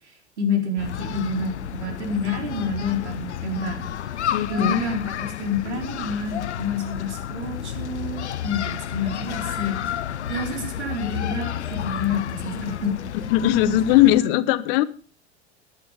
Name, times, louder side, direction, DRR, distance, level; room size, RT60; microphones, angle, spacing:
voice 1, 0.4-3.9 4.5-9.8 10.3-13.0 13.7-13.9, left 3 dB, 75° right, 4.2 m, -28 dB
sound 1, 0.8-14.2, left 10 dB, 75° left, 0.9 m, -31 dB
voice 2, 4.3-4.8 13.3-14.8, left 13 dB, 55° left, 1.2 m, -19 dB
15.0 x 10.5 x 4.9 m
figure-of-eight pair, 85°, 34 cm